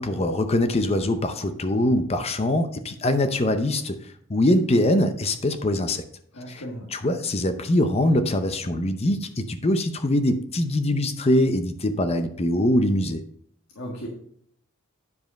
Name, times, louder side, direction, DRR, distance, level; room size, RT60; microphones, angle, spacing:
voice 1, 0.0-4.0 4.3-6.0 6.5-6.6 6.9-13.2, left 1 dB, 30° left, 9 dB, 0.6 m, -23 dB
voice 2, 6.3-6.9 13.8-14.1, equal, 80° left, -2 dB, 1.7 m, -35 dB
9.7 x 5.2 x 5.2 m, 0.66 s
head